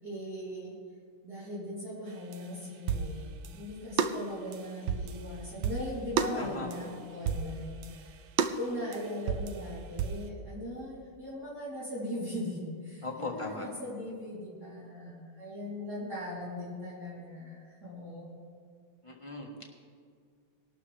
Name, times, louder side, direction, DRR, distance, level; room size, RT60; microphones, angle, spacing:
voice 1, 0.0-0.8 1.2-3.3 3.5-8.2 8.6-18.3, left 1 dB, 45° right, -10 dB, 4.2 m, -39 dB
sound 1, 2.1-3.7 4.0-7.0 7.3-10.3, right 7 dB, 70° right, 1.3 m, -33 dB
voice 2, 6.4-6.9 13.0-13.7 19.0-19.7, left 2 dB, 15° left, -1 dB, 1.3 m, -39 dB
20.0 x 12.0 x 3.5 m, 2.1 s
omnidirectional pair, 2.4 m